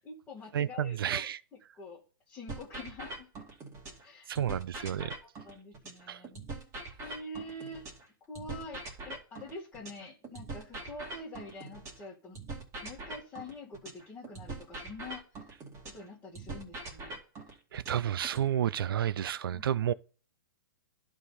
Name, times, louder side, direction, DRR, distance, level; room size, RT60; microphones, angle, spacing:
voice 1, 0.0-1.3 1.7-3.3 4.0-4.4 4.9-6.4 7.0-7.9 8.2-12.4 12.8-15.5 15.8-17.2 17.5-17.6 19.5-19.6, left 2 dB, 20° left, 1.9 m, -46 dB
voice 2, 0.5-1.4 4.3-5.1 6.1-6.2 17.7-19.9, right 10 dB, 80° right, 0.4 m, -31 dB
sound 1, 2.5-4.1 4.3-8.1 8.3-12.1 12.3-16.1 16.3-18.5, right 3 dB, 25° right, 2.3 m, -43 dB
11.5 x 3.8 x 4.0 m
hypercardioid pair, 135°, 12 cm